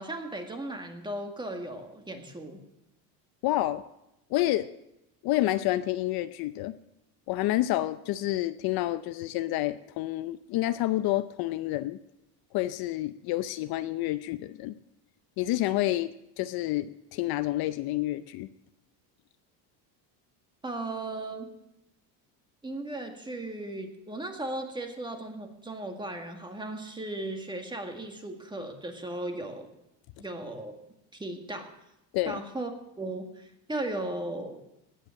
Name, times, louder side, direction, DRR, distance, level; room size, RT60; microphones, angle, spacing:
voice 1, 0.0-2.6 20.6-21.5 22.6-29.7 30.2-30.7 31.1-31.7 32.3-32.7 33.0-34.6, right 2 dB, 10° right, 4 dB, 1.8 m, -36 dB
voice 2, 3.4-3.8 4.3-4.7 5.2-6.8 7.3-12.0 12.5-14.7 15.4-16.1 16.4-18.5 32.1-32.4, left 15 dB, 55° left, 12 dB, 0.6 m, -29 dB
17.0 x 10.5 x 6.4 m, 0.87 s
cardioid pair, 140°, 45 cm